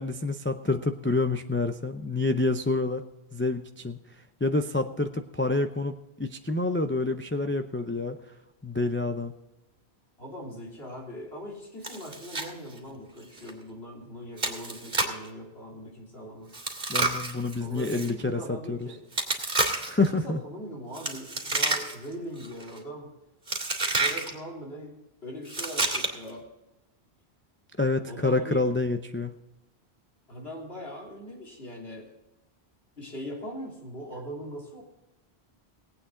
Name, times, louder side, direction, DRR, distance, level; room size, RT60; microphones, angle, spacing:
voice 1, 0.0-3.0 3.3-4.0 4.4-8.2 8.6-9.3 16.9-18.9 19.8-20.4 27.8-29.3, left 2 dB, 15° left, 6 dB, 0.4 m, -28 dB
voice 2, 10.2-16.6 17.6-19.0 20.1-23.1 23.9-24.9 25.2-26.5 28.1-28.7 30.3-32.1 33.0-34.8, equal, 70° left, -2 dB, 3.7 m, -40 dB
Chewing mastication, 11.8-12.5 12.8-12.9 13.4-13.5 14.4-15.3 16.5-18.1 19.1-20.1 20.9-22.1 22.4-22.8 23.5-24.3 25.5-26.3, right 2 dB, 55° right, 2.3 m, -29 dB
19.5 x 8.7 x 3.8 m, 0.96 s
omnidirectional pair, 1.1 m